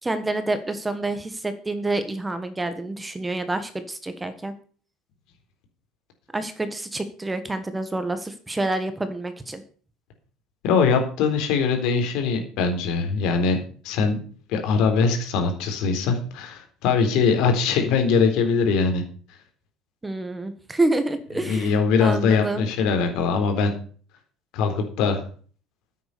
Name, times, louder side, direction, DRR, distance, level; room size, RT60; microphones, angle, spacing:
voice 1, 0.0-4.5 6.3-9.6 20.0-21.7 22.0-22.6, right 2 dB, 10° right, 10 dB, 1.4 m, -28 dB
voice 2, 10.6-13.6 13.8-14.2 14.5-19.0 21.4-23.7 24.5-25.2, left 5 dB, 70° left, 5 dB, 3.8 m, -22 dB
10.0 x 8.4 x 6.8 m, 0.43 s
cardioid pair, 130°, 0 cm